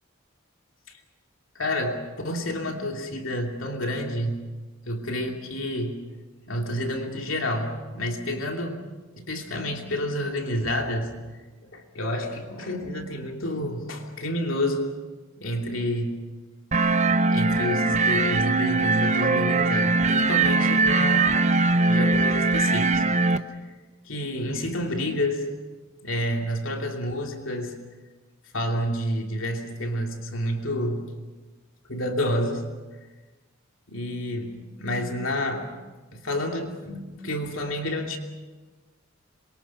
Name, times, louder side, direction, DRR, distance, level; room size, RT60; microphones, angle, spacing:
voice 1, 1.5-4.4 4.9-6.0 6.5-8.9 9.2-11.1 11.6-14.9 15.4-16.2 17.3-21.3 21.8-23.0 23.5-23.7 24.0-25.5 26.0-27.8 28.5-31.0 31.9-32.6 33.9-35.7 36.1-38.2, left 1 dB, 70° left, 2 dB, 2.9 m, -29 dB
sound 1, 16.7-23.4, right 3 dB, 35° right, 0.8 m, -21 dB
26.5 x 23.0 x 6.0 m, 1.3 s
head